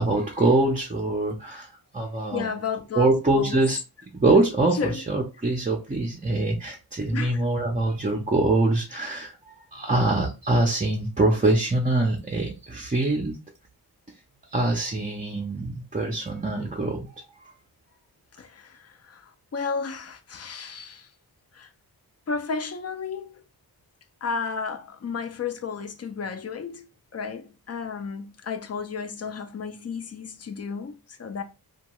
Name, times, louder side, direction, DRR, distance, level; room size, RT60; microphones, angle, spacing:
voice 1, 0.0-2.5 3.0-3.8 4.1-13.4 14.5-17.1, right 2 dB, 20° right, 0.5 m, -24 dB
voice 2, 2.3-3.7 4.7-5.0 7.1-7.4 18.4-21.1 21.5-21.7 22.3-23.4 24.2-31.4, left 5 dB, 40° left, 0.4 m, -33 dB
2.7 x 2.3 x 2.9 m
wide cardioid pair, 95°, 39 cm